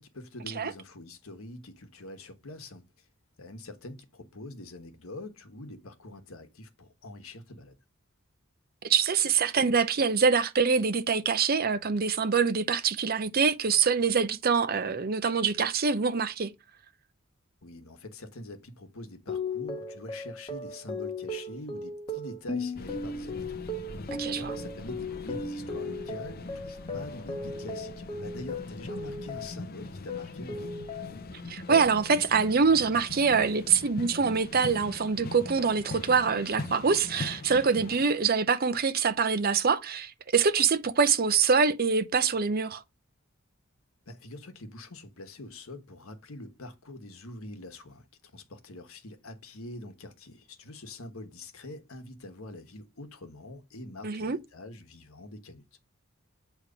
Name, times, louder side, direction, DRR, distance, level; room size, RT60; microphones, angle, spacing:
voice 1, 0.0-2.8 3.4-7.8 17.6-23.7 24.3-30.8 44.1-48.1 48.3-55.6, left 2 dB, 80° left, 1.3 m, -44 dB
voice 2, 8.8-16.5 24.1-24.6 31.5-42.8 54.0-54.4, right 5 dB, 45° right, 0.6 m, -25 dB
sound 1, 19.3-29.7 30.1-31.3 31.7-32.2, left 2 dB, 25° left, 1.0 m, -37 dB
sound 2, 22.7-38.0, left 2 dB, 45° left, 0.7 m, -42 dB
8.2 x 3.1 x 5.0 m
head